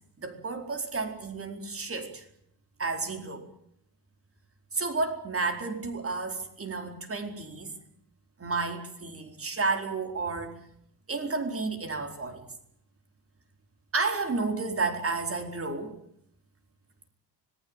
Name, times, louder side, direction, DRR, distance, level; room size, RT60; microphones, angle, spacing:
voice 1, 0.2-2.3 2.8-3.4 4.7-7.7 8.4-10.6 11.1-12.4 13.9-16.0, right 3 dB, 30° right, 5 dB, 4.5 m, -31 dB
25.5 x 20.5 x 9.0 m, 0.71 s
cardioid pair, 160°, 46 cm